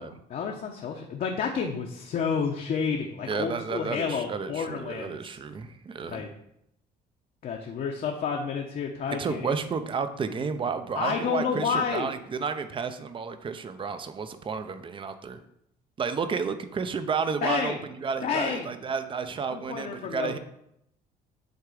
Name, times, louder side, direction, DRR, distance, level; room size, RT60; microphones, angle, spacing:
voice 1, 0.0-5.3 6.1-6.3 7.4-9.5 10.9-12.1 17.4-17.8 18.2-18.7 19.5-20.3, left 6 dB, 55° left, 1 dB, 0.9 m, -30 dB
voice 2, 3.3-6.2 9.1-15.4 16.0-20.4, right 5 dB, 30° right, 10 dB, 0.6 m, -31 dB
8.0 x 3.6 x 5.0 m, 0.76 s
cardioid pair, 110°, 17 cm